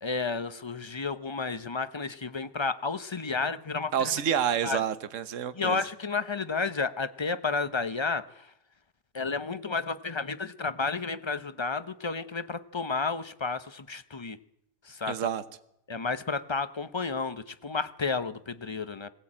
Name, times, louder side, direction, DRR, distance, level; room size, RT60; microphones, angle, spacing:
voice 1, 0.0-3.9 4.6-4.8 5.5-8.2 9.1-14.4 14.9-15.2 15.9-19.1, left 4 dB, 25° left, 12 dB, 0.6 m, -31 dB
voice 2, 3.9-5.8 15.1-15.4, right 9 dB, 60° right, 13 dB, 1.4 m, -28 dB
21.0 x 17.5 x 8.7 m, 0.78 s
omnidirectional pair, 1.5 m